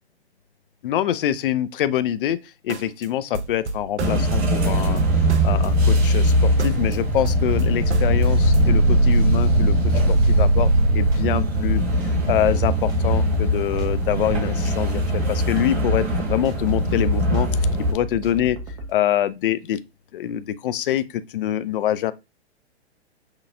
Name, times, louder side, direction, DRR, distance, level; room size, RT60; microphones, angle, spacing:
voice 1, 0.8-5.0 5.4-9.7 10.1-11.8 12.3-17.5 17.9-18.6 18.9-19.8 20.1-22.1, left 11 dB, 55° left, 0.4 m, -25 dB
sound 1, 2.7-3.1 3.3-4.3 4.6-7.0 7.2-8.7, right 3 dB, 85° right, 0.6 m, -32 dB
sound 2, 4.0-17.9, right 1 dB, 65° right, 2.1 m, -20 dB
sound 3, 8.2-18.9, right 1 dB, 10° right, 0.5 m, -36 dB
6.0 x 2.3 x 2.6 m
figure-of-eight pair, 125°, 33 cm